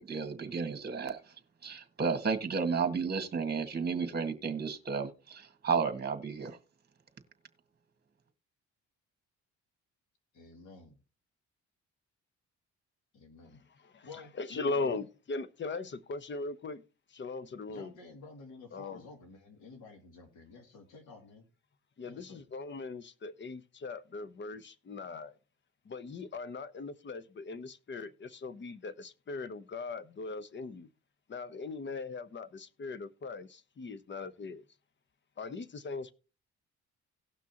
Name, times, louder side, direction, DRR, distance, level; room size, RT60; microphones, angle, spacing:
voice 1, 0.0-1.4 1.6-6.6, right 5 dB, 30° right, 1.8 m, -33 dB
voice 2, 10.3-10.9 13.1-13.6 14.0-14.9 17.7-21.4 22.1-22.4, left 4 dB, 90° left, 2.6 m, -51 dB
voice 3, 13.5-16.8 17.1-17.9 18.7-19.0 22.0-25.3 25.9-30.9 31.3-34.6 35.4-36.1, left 3 dB, 40° left, 0.9 m, -39 dB
18.0 x 6.0 x 3.0 m
cardioid pair, 90°, 30 cm